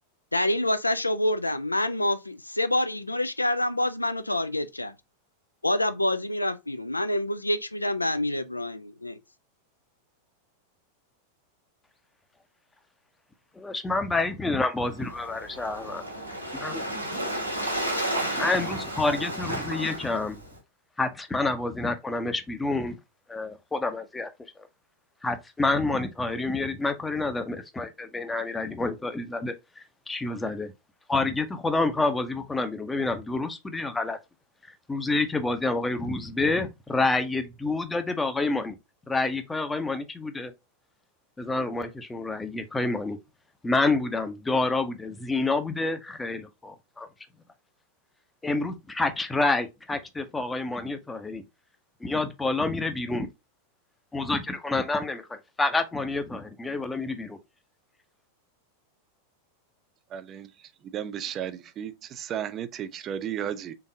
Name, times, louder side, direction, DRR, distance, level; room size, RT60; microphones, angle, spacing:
voice 1, 0.3-4.9 5.6-9.2, left 1 dB, 85° left, 0.4 m, -27 dB
voice 2, 13.5-16.0 16.5-16.9 18.4-20.4 21.0-23.0 23.3-24.3 24.6-24.7 25.2-30.7 31.1-34.2 34.9-38.8 39.1-40.5 41.4-43.2 43.6-47.1 48.4-51.4 52.0-53.3 54.1-57.4, left 3 dB, 10° left, 0.6 m, -28 dB
Waves surf, 14.9-20.6, right 1 dB, 85° right, 1.2 m, -32 dB
voice 3, 60.1-60.5 60.9-63.7, right 9 dB, 30° right, 0.4 m, -34 dB
3.8 x 3.5 x 2.7 m
figure-of-eight pair, 90°, 0 cm